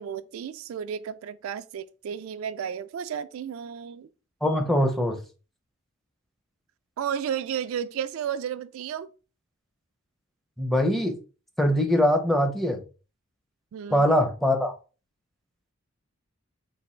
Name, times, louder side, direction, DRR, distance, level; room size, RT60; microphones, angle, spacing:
voice 1, 0.0-4.1 7.0-9.1 13.7-14.1, right 8 dB, 70° right, 0.3 m, -33 dB
voice 2, 4.4-5.2 10.6-11.2 11.6-12.8 13.9-14.7, equal, ahead, 0.5 m, -22 dB
4.1 x 2.5 x 4.3 m
head